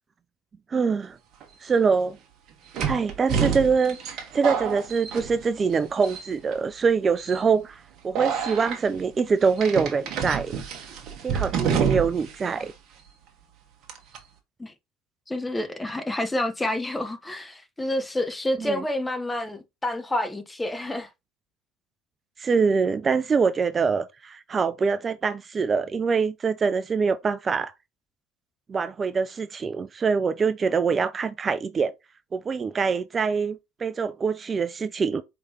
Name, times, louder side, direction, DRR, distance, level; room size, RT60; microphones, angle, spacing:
voice 1, 0.7-1.2 1.6-2.2 2.8-10.6 11.2-12.7 18.6-18.8 22.4-27.7 28.7-31.9 32.3-35.2, right 5 dB, 30° right, 0.4 m, -24 dB
sound 1, 1.4-1.5 2.7-5.7 6.0-6.5 7.2-7.4 8.1-8.8 9.6-12.3 12.6-12.7 13.9-14.2, right 7 dB, 55° right, 1.3 m, -28 dB
voice 2, 15.3-21.1, left 1 dB, 10° left, 0.9 m, -28 dB
4.7 x 3.6 x 2.9 m
hypercardioid pair, 75°, 0 cm